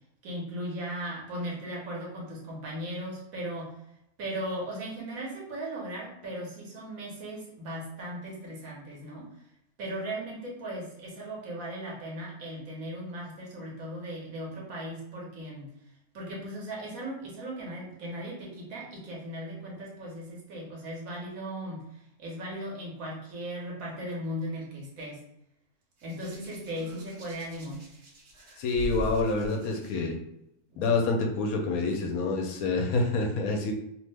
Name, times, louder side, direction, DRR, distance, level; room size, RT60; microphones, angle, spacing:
voice 1, 0.2-3.7 4.2-9.3 9.8-15.7 16.1-25.2 26.0-27.8 30.7-30.8, right 1 dB, 70° right, -3 dB, 1.3 m, -37 dB
Hands, 26.0-29.9 30.9-31.2, equal, 55° right, 1.1 m, -41 dB
voice 2, 28.6-30.2 30.8-33.7, left 3 dB, 75° left, 3 dB, 1.0 m, -27 dB
3.0 x 2.1 x 3.3 m, 0.79 s
omnidirectional pair, 1.5 m